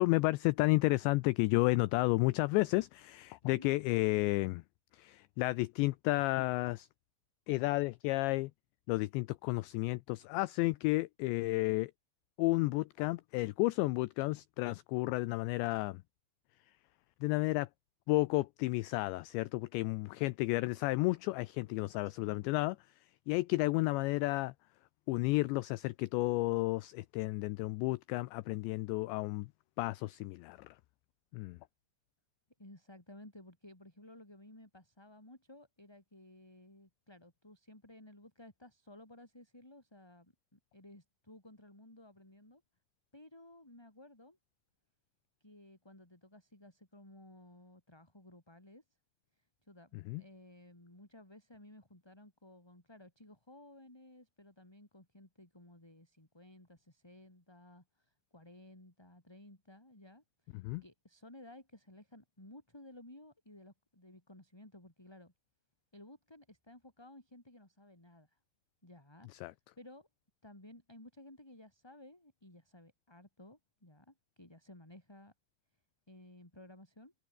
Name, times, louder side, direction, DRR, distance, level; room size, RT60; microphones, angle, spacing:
voice 1, 0.0-4.6 4.9-6.9 7.5-8.5 8.9-11.9 12.4-16.0 17.2-17.7 18.1-22.8 23.3-24.5 25.1-29.5 29.8-30.8 31.3-31.6 50.1-50.2 60.6-60.8 69.3-69.5, left 21 dB, 85° left, 2.5 m, -32 dB
voice 2, 22.0-22.5 32.6-42.6 43.1-44.4 45.4-48.8 49.4-65.3 65.9-68.4 68.8-70.1 70.4-75.3 76.1-77.1, left 1 dB, 5° left, 3.7 m, -56 dB
omnidirectional pair, 5.8 m